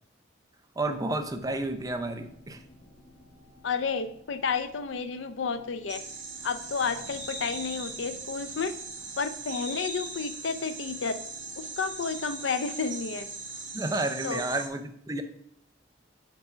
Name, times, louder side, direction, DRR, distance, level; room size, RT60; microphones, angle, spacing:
voice 1, 0.8-2.6 13.7-15.2, right 2 dB, 20° right, 8 dB, 0.5 m, -31 dB
sound 1, 0.9-14.3, left 1 dB, 60° left, 1.7 m, -55 dB
voice 2, 3.6-6.0 6.4-8.7 9.2-11.2 11.6-13.3 14.2-14.4, left 5 dB, 85° left, 11 dB, 0.5 m, -31 dB
sound 2, 5.9-14.7, right 3 dB, 90° right, 1.3 m, -40 dB
5.0 x 4.7 x 5.7 m, 0.67 s
head